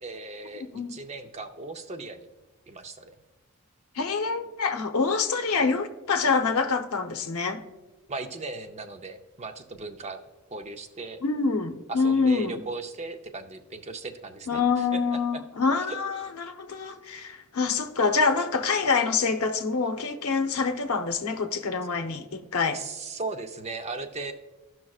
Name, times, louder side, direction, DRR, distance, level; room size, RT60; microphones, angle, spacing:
voice 1, 0.0-2.3 2.7-3.1 8.1-10.2 10.5-11.2 11.9-15.0 15.3-15.4 15.9-16.0 22.7-24.3, right 3 dB, 30° right, 0.5 m, -37 dB
voice 2, 0.6-1.0 3.9-7.6 11.2-12.6 14.5-22.8, left 4 dB, 85° left, 0.7 m, -26 dB
14.5 x 6.0 x 2.4 m
head